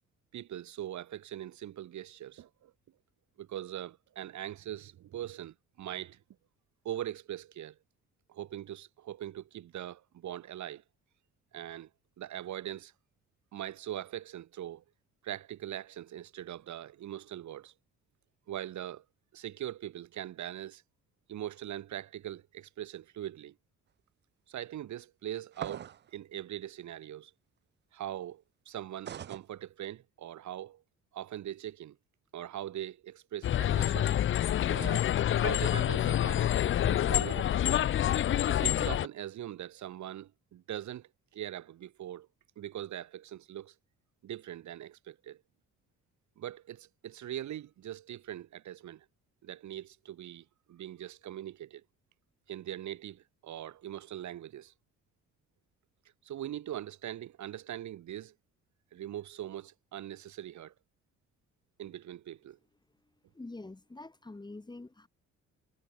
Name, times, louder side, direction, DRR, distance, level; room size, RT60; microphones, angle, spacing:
voice 1, 0.3-2.7 3.4-6.2 6.8-7.8 8.3-10.8 11.5-11.9 12.2-12.9 13.5-14.8 15.2-17.7 18.5-19.0 19.3-20.8 21.3-23.5 24.5-27.3 27.9-30.8 31.1-32.0 32.3-34.3 34.7-35.0 35.3-36.5 36.9-37.8 38.4-42.3 42.6-43.7 44.2-45.4 46.4-49.1 49.4-51.8 52.5-54.7 56.2-58.3 58.9-60.7 61.8-62.6, right 12 dB, 70° right, 2.3 m, -41 dB
sound 1, 25.5-26.1 29.1-29.4, right 9 dB, 35° right, 0.5 m, -40 dB
sound 2, 33.4-39.1, left 11 dB, 40° left, 0.4 m, -27 dB
voice 2, 63.0-65.1, left 2 dB, 15° left, 1.4 m, -46 dB
cardioid pair, 90°, 30 cm